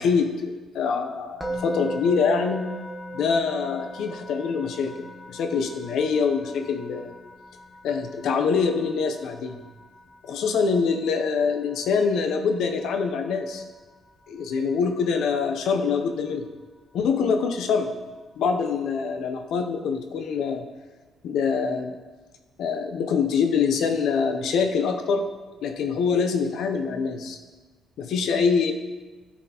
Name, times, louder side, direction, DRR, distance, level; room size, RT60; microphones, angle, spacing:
voice 1, 0.0-2.7 3.1-4.9 5.3-7.1 7.8-9.6 10.2-13.6 14.3-16.5 16.9-17.9 18.4-20.7 21.2-22.0 22.6-25.3 25.6-27.4 28.0-28.7, left 5 dB, 80° left, 6 dB, 0.6 m, -24 dB
Musical instrument, 1.4-12.5, equal, 10° left, 0.9 m, -39 dB
12.5 x 4.2 x 2.9 m, 1.3 s
cardioid pair, 90°, 0 cm